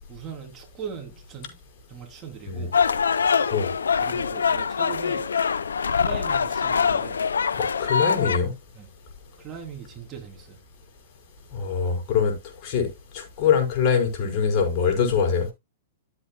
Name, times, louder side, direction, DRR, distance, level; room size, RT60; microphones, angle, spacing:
voice 1, 0.1-1.5 1.9-2.7 4.0-5.2 5.9-7.2 8.7-8.9 9.4-10.6, right 6 dB, 25° right, 3.3 m, -39 dB
sound 1, 2.7-8.4, left 6 dB, 90° left, 0.8 m, -24 dB
voice 2, 7.6-8.5 11.5-12.3 12.6-12.9 13.1-15.5, left 6 dB, 45° left, 5.4 m, -23 dB
13.5 x 7.8 x 2.4 m
hypercardioid pair, 125°, 0 cm